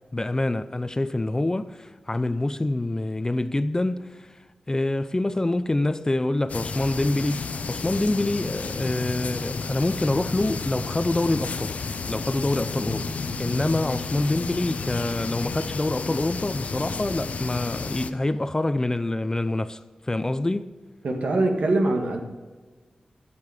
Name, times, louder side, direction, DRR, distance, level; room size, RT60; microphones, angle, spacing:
voice 1, 0.1-4.3 4.7-11.8 12.1-13.1 13.4-20.7, left 2 dB, 25° left, 0.6 m, -26 dB
sound 1, 6.5-18.1, left 4 dB, 75° left, 0.7 m, -32 dB
sound 2, 8.0-17.6, right 1 dB, 55° right, 3.9 m, -44 dB
voice 2, 21.0-22.2, right 2 dB, 75° right, 1.8 m, -23 dB
15.5 x 7.0 x 4.9 m
cardioid pair, 50°, 2 cm